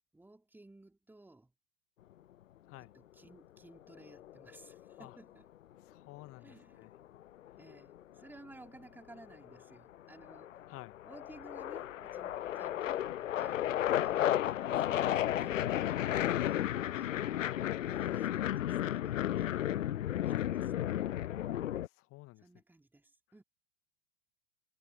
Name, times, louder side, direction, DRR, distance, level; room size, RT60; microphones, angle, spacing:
voice 1, 0.0-1.5 2.8-5.5 6.4-6.9 7.6-10.6 11.0-17.2 17.8-19.7 20.4-21.1 22.4-23.4, right 2 dB, 5° right, 3.9 m, -57 dB
sound 1, 4.0-5.1 6.9-8.2 9.2-9.6 9.9-21.9, left 12 dB, 75° left, 0.6 m, -33 dB
voice 2, 5.9-6.9 10.7-11.0 17.3-17.6 20.2-20.4 21.8-22.4, left 20 dB, 35° left, 1.5 m, -51 dB
figure-of-eight pair, 95°, 39 cm